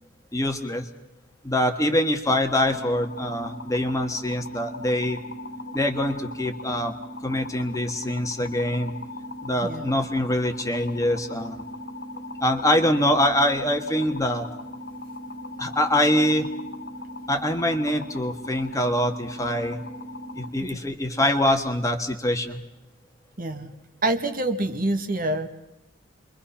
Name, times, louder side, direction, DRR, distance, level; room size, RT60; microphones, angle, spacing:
voice 1, 0.3-0.9 1.4-5.2 5.7-6.9 7.2-9.0 9.4-11.6 12.4-14.5 15.6-16.5 17.3-19.8 20.4-22.6, left 1 dB, 15° left, 5 dB, 1.6 m, -24 dB
sound 1, 2.6-20.5, left 1 dB, 55° left, 2.1 m, -38 dB
voice 2, 23.4-23.7 24.0-25.5, right 2 dB, 40° right, 6 dB, 1.7 m, -26 dB
29.0 x 23.5 x 5.8 m, 0.91 s
head